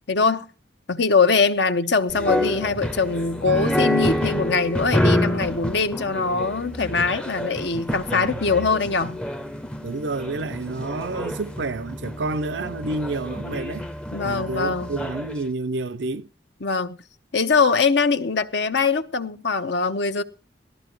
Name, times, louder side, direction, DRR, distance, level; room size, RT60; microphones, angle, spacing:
voice 1, 0.1-0.4 0.9-9.2 14.1-15.0 16.6-17.0 17.3-20.2, left 4 dB, 70° left, 1.0 m, -22 dB
sound 1, 2.1-15.4, left 1 dB, 5° left, 0.6 m, -28 dB
voice 2, 8.1-8.4 9.8-13.9 14.2-16.3, right 3 dB, 80° right, 0.6 m, -29 dB
18.5 x 13.0 x 3.1 m
head